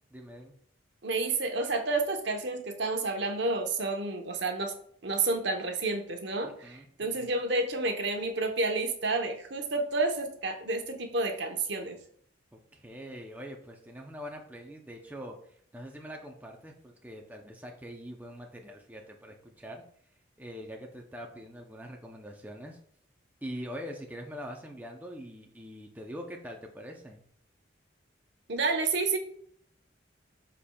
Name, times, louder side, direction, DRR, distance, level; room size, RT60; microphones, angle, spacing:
voice 1, 0.1-0.5 6.4-7.3 12.5-19.8 20.4-22.8 23.4-27.2, equal, 10° right, 1 dB, 0.7 m, -43 dB
voice 2, 1.0-4.7 5.0-12.0 28.5-29.2, right 3 dB, 65° right, 4 dB, 1.0 m, -30 dB
12.5 x 4.3 x 2.3 m, 0.62 s
head